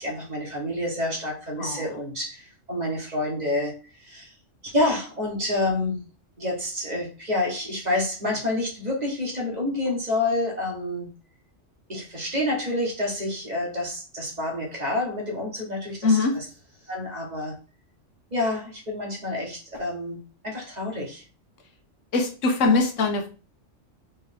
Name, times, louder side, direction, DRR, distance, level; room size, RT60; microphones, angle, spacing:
voice 1, 0.0-4.3 4.6-6.0 6.4-11.1 11.9-16.2 16.9-17.5 18.3-21.2, left 2 dB, 35° right, -1 dB, 1.5 m, -28 dB
voice 2, 16.0-16.4 22.1-23.3, left 3 dB, 80° left, 4 dB, 1.2 m, -22 dB
4.2 x 3.4 x 3.6 m, 0.35 s
omnidirectional pair, 1.3 m